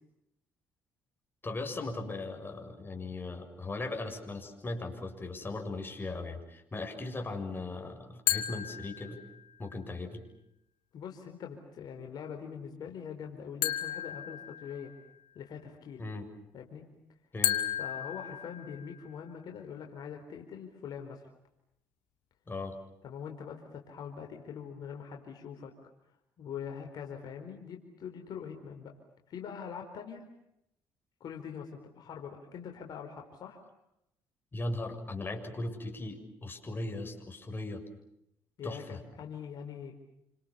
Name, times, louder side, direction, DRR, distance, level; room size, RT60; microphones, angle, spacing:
voice 1, 1.4-9.2 9.6-10.2 16.0-16.3 17.3-17.6 22.5-22.8 34.5-37.8 38.6-39.0, left 2 dB, 25° left, 4 dB, 7.3 m, -38 dB
sound 1, 8.3-9.6 13.6-15.1 17.4-19.1, left 13 dB, 90° left, 2.7 m, -34 dB
voice 2, 10.9-14.9 15.3-16.0 16.5-16.9 17.8-21.3 23.0-25.7 26.4-28.9 29.3-30.3 31.2-33.6 38.6-39.9, left 7 dB, 60° left, 3 dB, 4.5 m, -43 dB
30.0 x 26.5 x 7.2 m, 0.81 s
supercardioid pair, 65°, 8 cm